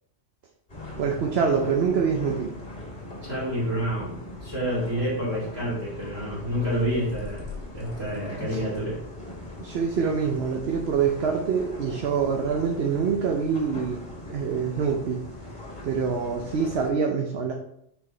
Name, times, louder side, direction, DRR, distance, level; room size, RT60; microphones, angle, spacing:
sound 1, 0.7-16.9, left 2 dB, 35° left, 2.0 m, -40 dB
voice 1, 1.0-2.5 9.6-14.0 14.3-15.2 15.8-17.5, right 6 dB, 60° right, 2 dB, 1.0 m, -25 dB
voice 2, 3.2-7.5 7.7-9.0, equal, 20° right, -12 dB, 2.4 m, -28 dB
6.9 x 4.8 x 4.4 m, 0.74 s
omnidirectional pair, 1.3 m